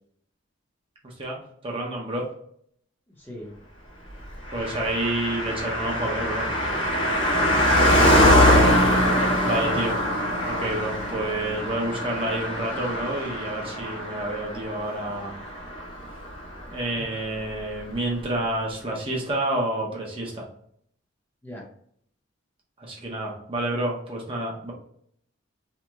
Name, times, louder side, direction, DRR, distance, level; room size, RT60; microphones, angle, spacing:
voice 1, 1.0-2.3 4.5-6.5 9.4-10.0 10.4-15.4 16.7-20.5 22.8-24.7, right 1 dB, 30° right, -2 dB, 0.7 m, -29 dB
voice 2, 3.1-3.6 9.3-10.2 16.9-17.1 21.4-21.7, equal, 10° left, -3 dB, 0.7 m, -39 dB
Car passing by, 4.5-16.3 16.6-16.7, left 1 dB, 70° left, 1.1 m, -23 dB
2.9 x 2.1 x 3.4 m, 0.64 s
head